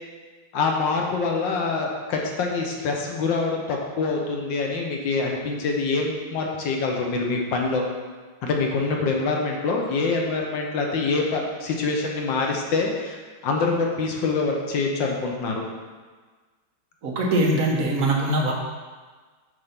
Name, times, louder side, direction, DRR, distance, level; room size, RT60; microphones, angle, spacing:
voice 1, 0.5-7.8 8.4-13.2 13.4-15.7, left 4 dB, 70° left, 0 dB, 1.4 m, -25 dB
voice 2, 17.0-18.5, right 1 dB, 55° right, -2 dB, 1.0 m, -22 dB
7.7 x 2.7 x 5.7 m, 1.4 s
omnidirectional pair, 2.3 m